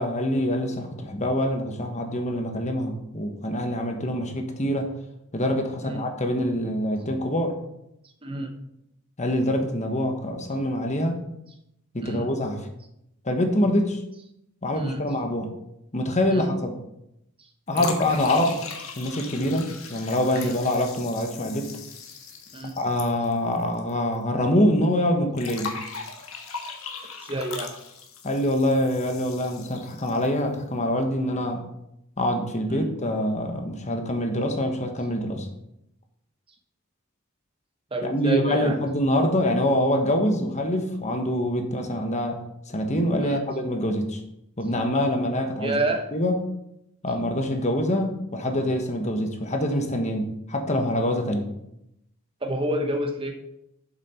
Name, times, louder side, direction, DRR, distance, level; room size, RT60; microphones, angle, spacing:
voice 1, 0.0-4.9 5.3-7.6 9.2-11.1 11.9-12.7 13.2-14.0 14.6-15.5 15.9-16.8 17.7-18.6 19.0-21.7 22.8-25.8 28.2-31.6 32.2-35.5 38.0-42.4 42.7-44.2 44.6-45.9 46.1-46.4 47.0-51.5, left 1 dB, 35° left, 5 dB, 1.2 m, -25 dB
voice 2, 8.2-8.6 12.0-12.3 14.8-15.0 16.3-16.5 17.4-18.1 20.3-20.6 22.1-22.2 22.5-22.7 27.2-27.7 32.7-32.9 37.9-38.8 43.2-43.4 45.6-46.1 52.4-53.3, right 1 dB, 25° right, 4 dB, 1.1 m, -29 dB
sound 1, 17.7-23.9 24.1-24.2 25.4-30.4, left 5 dB, 80° left, 1.5 m, -38 dB
7.4 x 7.2 x 5.7 m, 0.83 s
head